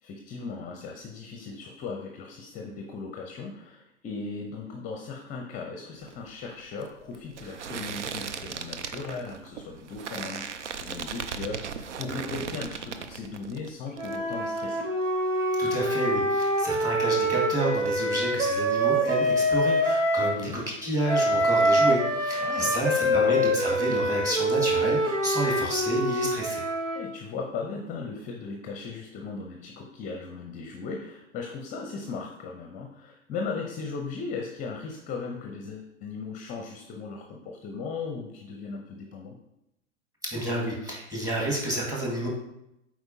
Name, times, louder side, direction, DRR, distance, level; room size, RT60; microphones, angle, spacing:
voice 1, 0.0-14.9 20.2-20.6 22.4-23.3 26.9-39.4, left 4 dB, 20° left, 2 dB, 0.6 m, -37 dB
sound 1, 6.0-13.7 14.0-14.6, right 6 dB, 70° right, 0.6 m, -37 dB
Wind instrument woodwind instrument, 14.0-20.4 21.1-27.1, equal, 90° right, 1.0 m, -25 dB
voice 2, 15.6-26.6 40.3-42.3, right 1 dB, 10° right, -3 dB, 2.0 m, -30 dB
7.8 x 4.6 x 2.8 m, 0.85 s
figure-of-eight pair, 100°, 37 cm